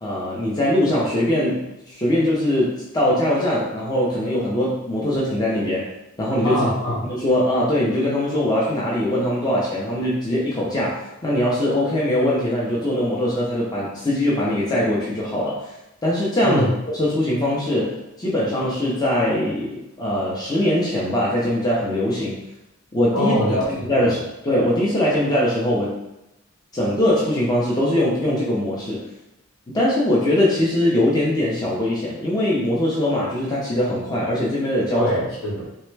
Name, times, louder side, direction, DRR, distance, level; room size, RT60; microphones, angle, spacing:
voice 1, 0.0-5.9 6.2-6.7 7.0-15.8 16.0-22.4 22.9-23.4 23.7-26.0 26.7-29.0 29.7-35.1, left 1 dB, 20° left, -6 dB, 0.4 m, -21 dB
voice 2, 6.4-7.0 16.4-16.7 23.1-24.1 34.9-35.6, equal, 80° left, -6 dB, 1.2 m, -23 dB
3.2 x 2.1 x 3.1 m, 0.93 s
head